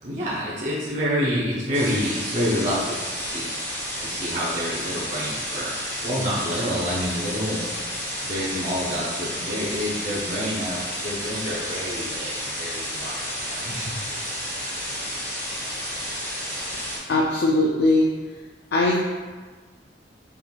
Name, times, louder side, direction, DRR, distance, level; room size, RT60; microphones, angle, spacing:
voice 1, 0.0-3.5 4.0-5.7 6.0-14.3, equal, 40° right, -6 dB, 0.6 m, -28 dB
sound 1, 1.7-17.0, equal, 15° left, 1.1 m, -31 dB
voice 2, 17.1-18.1 18.7-19.0, left 2 dB, 70° left, -2 dB, 0.4 m, -20 dB
5.4 x 3.2 x 2.3 m, 1.4 s
head